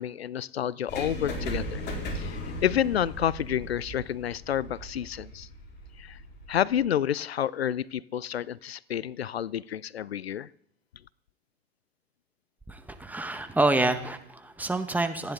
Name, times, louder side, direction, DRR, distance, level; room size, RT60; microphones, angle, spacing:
voice 1, 0.0-1.8 2.1-5.5 6.0-6.2 6.5-10.5, left 10 dB, 90° left, 23 dB, 0.5 m, -29 dB
sound 1, 0.9-6.8, equal, 35° left, 4.2 m, -37 dB
voice 2, 12.7-15.3, right 2 dB, 5° right, 7 dB, 1.5 m, -27 dB
27.0 x 10.5 x 3.9 m, 0.68 s
hypercardioid pair, 95°, 30 cm